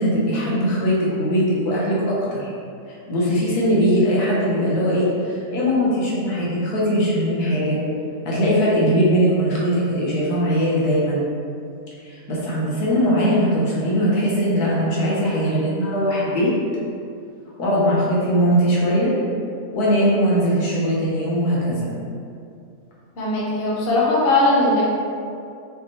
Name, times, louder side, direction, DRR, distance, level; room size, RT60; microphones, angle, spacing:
voice 1, 0.0-2.5 2.9-7.8 8.2-11.2 12.0-16.5 17.6-19.1 19.7-21.9, equal, 90° left, -6 dB, 1.6 m, -20 dB
voice 2, 23.2-24.8, left 2 dB, 45° left, -6 dB, 1.0 m, -19 dB
5.5 x 3.2 x 2.9 m, 2.4 s
omnidirectional pair, 1.6 m